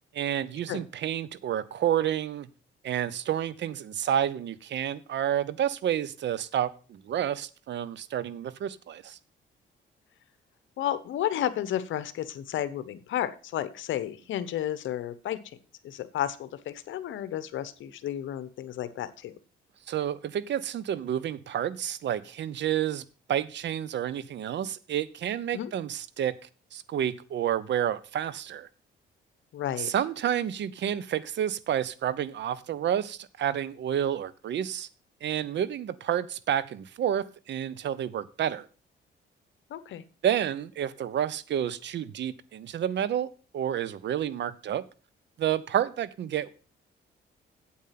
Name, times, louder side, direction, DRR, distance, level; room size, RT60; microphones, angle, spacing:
voice 1, 0.1-2.5 2.8-9.2 19.9-26.4 26.7-28.7 29.8-34.9 35.2-38.7 40.2-43.3 43.5-44.8 45.4-46.5, right 10 dB, 65° right, 0.8 m, -30 dB
voice 2, 10.8-15.4 15.8-19.3 25.5-25.7 29.5-29.9 39.7-40.0, left 11 dB, 75° left, 0.9 m, -32 dB
8.6 x 8.3 x 5.8 m
cardioid pair, 90°, 20 cm